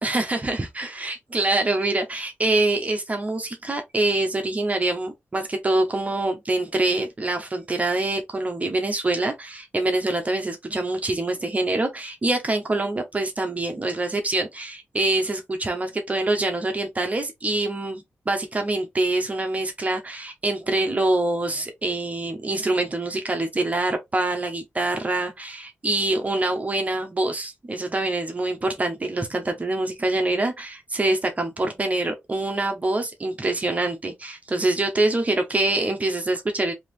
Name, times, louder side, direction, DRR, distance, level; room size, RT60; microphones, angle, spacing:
voice 1, 0.0-36.7, right 2 dB, 30° right, 0.8 m, -25 dB
3.7 x 2.8 x 3.1 m
wide cardioid pair, 95°, 5 cm